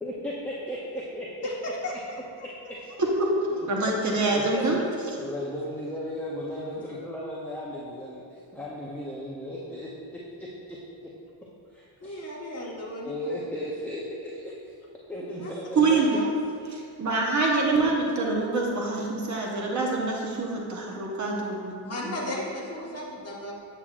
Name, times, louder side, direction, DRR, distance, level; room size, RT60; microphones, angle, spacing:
voice 1, 0.0-1.5 2.4-2.8 3.5-3.7 4.2-4.9 5.2-10.8 11.0-11.1 11.7-12.2 13.0-14.7 15.1-16.1, left 1 dB, 5° left, -5 dB, 0.5 m, -35 dB
voice 2, 1.4-2.5 12.0-13.3 15.4-15.5 16.0-16.3 17.5-17.8 21.8-23.5, left 1 dB, 35° left, -4 dB, 1.3 m, -35 dB
voice 3, 3.7-4.8 15.8-16.2 16.7-22.1, right 3 dB, 40° right, -1 dB, 1.0 m, -26 dB
8.6 x 7.2 x 2.4 m, 2.4 s
cardioid pair, 150°, 45 cm